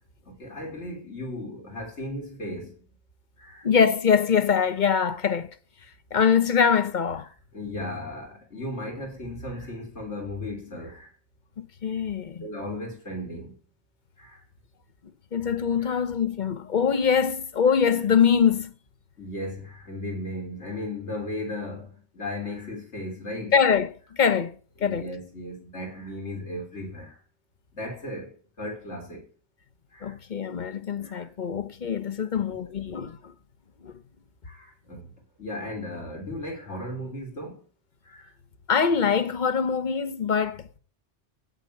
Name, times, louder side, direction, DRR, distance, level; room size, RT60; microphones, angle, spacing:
voice 1, 0.3-2.8 3.4-3.7 7.5-11.1 12.4-13.5 14.2-14.4 15.8-16.0 19.2-23.5 24.8-27.2 27.7-29.3 29.9-30.1 31.0-31.3 32.2-32.6 32.9-33.0 34.4-35.1 35.4-37.6 38.0-38.3, left 1 dB, 80° left, 4.0 m, -36 dB
voice 2, 3.6-5.5 6.1-7.3 11.6-12.5 15.3-18.7 23.5-24.5 24.8-25.1 30.0-33.2 33.8-33.9 38.7-40.8, left 7 dB, 45° left, 1.0 m, -23 dB
8.9 x 8.1 x 8.5 m
omnidirectional pair, 1.2 m